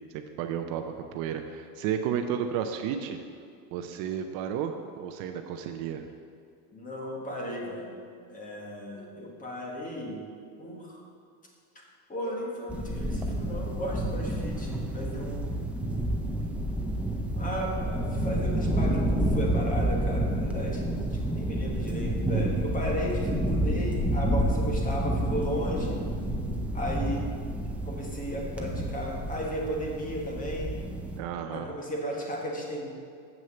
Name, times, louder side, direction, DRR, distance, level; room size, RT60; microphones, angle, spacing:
voice 1, 0.1-0.8 1.1-3.2 3.7-6.1 31.2-31.7, right 8 dB, 50° right, 6 dB, 0.6 m, -32 dB
voice 2, 6.7-8.0 8.3-10.2 10.6-11.0 12.1-15.5 17.4-26.0 26.7-27.3 27.8-30.7 31.5-32.9, equal, 20° left, -1 dB, 1.6 m, -35 dB
sound 1, 12.7-31.2, right 1 dB, 5° right, 0.4 m, -29 dB
7.4 x 6.1 x 6.8 m, 2.3 s
cardioid pair, 150°, 44 cm